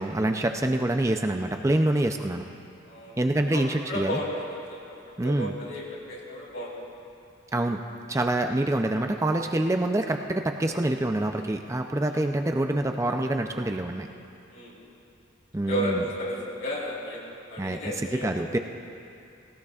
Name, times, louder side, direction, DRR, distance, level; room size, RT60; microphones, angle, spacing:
voice 1, 0.0-2.4 3.2-4.2 5.2-5.5 7.5-7.8 8.1-14.1 15.5-16.0 17.6-18.6, right 1 dB, 15° right, 5 dB, 0.4 m, -26 dB
voice 2, 2.9-3.2 3.5-5.0 5.2-6.7 8.1-8.2 14.5-14.8 15.7-16.3 16.6-18.3, equal, 80° left, -5 dB, 3.9 m, -33 dB
18.5 x 18.0 x 2.4 m, 2.6 s
head